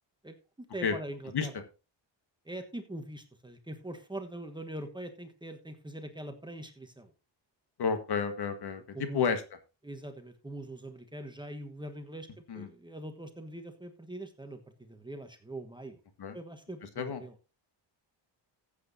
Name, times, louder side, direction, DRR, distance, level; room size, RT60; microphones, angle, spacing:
voice 1, 0.7-1.5 2.4-7.1 8.9-9.2 9.8-16.0 16.3-17.3, right 1 dB, 10° right, 5 dB, 1.2 m, -42 dB
voice 2, 7.8-9.4 12.5-12.7 16.2-16.4 16.8-17.2, left 6 dB, 55° left, 9 dB, 1.6 m, -31 dB
15.0 x 8.3 x 2.7 m, 0.30 s
cardioid pair, 100°, 46 cm